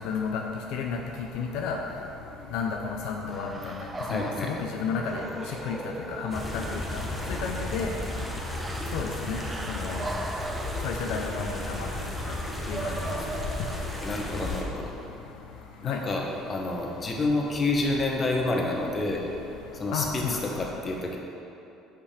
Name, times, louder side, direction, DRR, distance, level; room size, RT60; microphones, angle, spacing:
voice 1, 0.0-0.4 0.7-1.8 2.5-3.7 4.1-5.2 5.6-5.8 6.1-7.0 7.3-7.9 8.9-10.0 10.8-11.9 12.7-12.9 15.9-16.0 19.9-20.4, left 6 dB, 75° left, 1 dB, 0.5 m, -32 dB
sound 1, 3.3-14.3, right 2 dB, 20° right, 0.5 m, -40 dB
voice 2, 4.1-4.5 14.0-14.9 15.8-19.3 19.8-21.2, left 2 dB, 30° left, 0 dB, 1.0 m, -29 dB
sound 2, 6.3-14.6, left 1 dB, 5° left, 1.0 m, -34 dB
5.3 x 5.2 x 5.0 m, 2.8 s
supercardioid pair, 95°, 0 cm